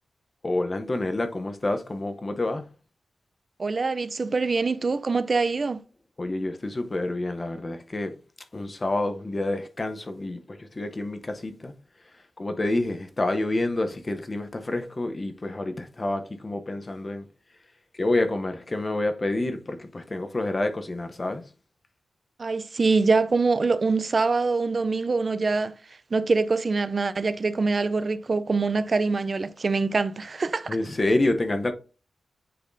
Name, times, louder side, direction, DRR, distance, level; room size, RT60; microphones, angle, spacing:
voice 1, 0.4-2.7 6.2-8.1 8.5-11.7 12.4-17.2 18.0-21.4 30.7-31.7, left 2 dB, 25° left, 0.7 m, -28 dB
voice 2, 3.6-5.8 22.4-25.7 26.1-30.8, right 4 dB, 35° right, 0.4 m, -24 dB
10.0 x 4.1 x 2.6 m
wide cardioid pair, 175°, 0 cm